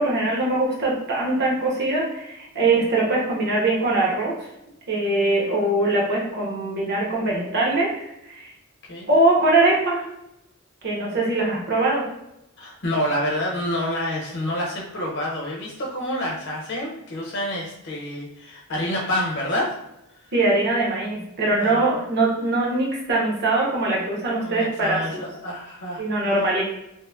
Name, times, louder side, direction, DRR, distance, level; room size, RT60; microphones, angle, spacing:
voice 1, 0.0-4.3 4.9-8.5 9.1-10.1 10.8-12.0 20.3-25.2 26.0-26.6, right 2 dB, 55° right, -4 dB, 0.8 m, -22 dB
voice 2, 12.6-19.7 20.1-20.3 21.6-21.9 24.4-26.3, left 1 dB, 55° left, -3 dB, 0.8 m, -28 dB
2.9 x 2.1 x 2.3 m, 0.84 s
head